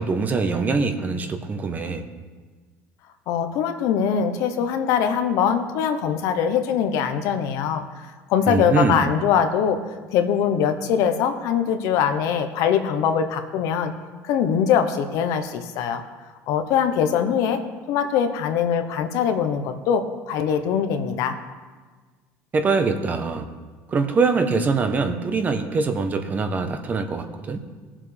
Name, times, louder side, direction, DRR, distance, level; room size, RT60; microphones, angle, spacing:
voice 1, 0.0-2.0 8.5-9.1 22.5-23.5 23.9-27.6, right 4 dB, 25° right, 7 dB, 1.0 m, -23 dB
voice 2, 3.3-9.8 10.1-13.9 14.2-16.0 16.5-17.6 17.9-21.4, left 8 dB, 65° left, 7 dB, 1.0 m, -22 dB
18.0 x 7.4 x 3.4 m, 1.4 s
cardioid pair, 125°, 6 cm